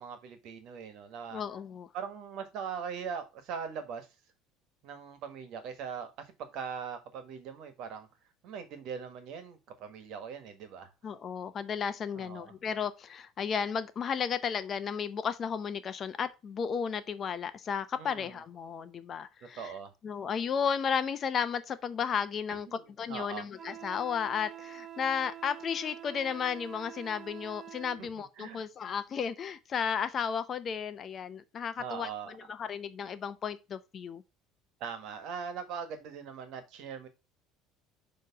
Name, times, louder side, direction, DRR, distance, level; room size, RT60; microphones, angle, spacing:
voice 1, 0.0-1.4 1.9-4.1 4.8-6.1 6.4-8.1 8.4-10.9 12.1-12.5 18.0-18.4 19.4-19.9 22.5-22.8 23.1-23.4 28.0-28.6 31.8-32.3 34.8-37.1, right 6 dB, 65° right, 1.5 m, -41 dB
voice 2, 1.3-1.9 11.0-19.7 20.0-34.2, left 7 dB, 40° left, 0.7 m, -34 dB
Wind instrument woodwind instrument, 23.6-28.0, right 11 dB, 40° right, 0.6 m, -47 dB
6.6 x 3.1 x 5.9 m
supercardioid pair, 115°, 0 cm